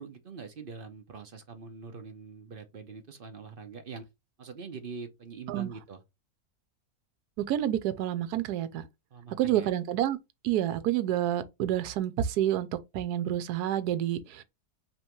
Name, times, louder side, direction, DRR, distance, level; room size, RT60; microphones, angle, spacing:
voice 1, 0.0-4.1 4.4-6.0 9.1-9.7, right 5 dB, 45° right, 0.8 m, -43 dB
voice 2, 7.4-8.9 9.4-10.2 10.4-12.7 12.9-14.4, right 12 dB, 85° right, 1.2 m, -28 dB
5.4 x 2.9 x 3.0 m
omnidirectional pair, 1.6 m